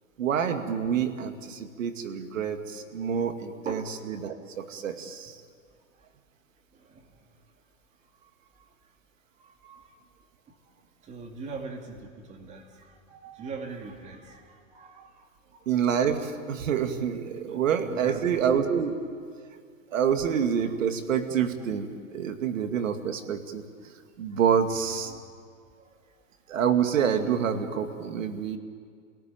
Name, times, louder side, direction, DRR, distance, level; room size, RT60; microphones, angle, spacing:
voice 1, 0.2-3.8 4.1-5.4 15.7-19.0 19.9-23.6 24.2-25.1 26.5-28.6, right 8 dB, 70° right, 7 dB, 2.4 m, -27 dB
voice 2, 3.6-4.0 6.7-7.3 8.2-8.3 8.6-8.7 9.4-9.9 11.0-15.3 15.5-15.6 17.4-18.5 19.9-20.0 24.3-24.4 25.0-25.2 25.8-25.9 26.5-26.6, right 4 dB, 15° right, 3 dB, 2.4 m, -42 dB
28.0 x 18.0 x 9.1 m, 2.1 s
hypercardioid pair, 150°, 41 cm